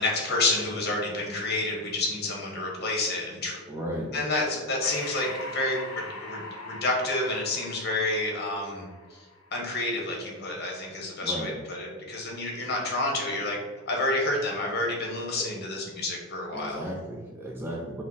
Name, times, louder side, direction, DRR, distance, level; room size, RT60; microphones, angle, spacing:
voice 1, 0.0-3.6 4.1-8.8 9.5-13.6 13.9-16.9, left 2 dB, 45° left, -1 dB, 1.0 m, -29 dB
voice 2, 3.7-4.1 11.2-11.5 15.4-15.5 16.5-18.0, equal, 10° right, -3 dB, 0.4 m, -35 dB
Breathing, 4.8-9.7, left 2 dB, 70° left, 0.6 m, -42 dB
5.2 x 2.1 x 4.0 m, 1.4 s
head